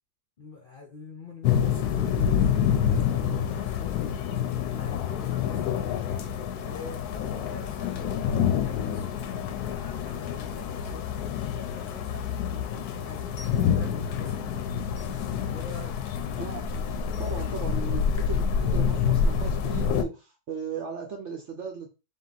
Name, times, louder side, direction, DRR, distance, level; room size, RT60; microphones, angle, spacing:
voice 1, 0.4-6.2 6.6-12.2 12.5-14.7 15.4-15.9, left 4 dB, 50° left, 1 dB, 0.6 m, -45 dB
sound 1, 1.4-20.0, left 8 dB, 75° left, 1.1 m, -27 dB
voice 2, 17.1-21.9, right 5 dB, 60° right, 3 dB, 0.8 m, -37 dB
3.6 x 2.8 x 3.9 m, 0.29 s
omnidirectional pair, 1.8 m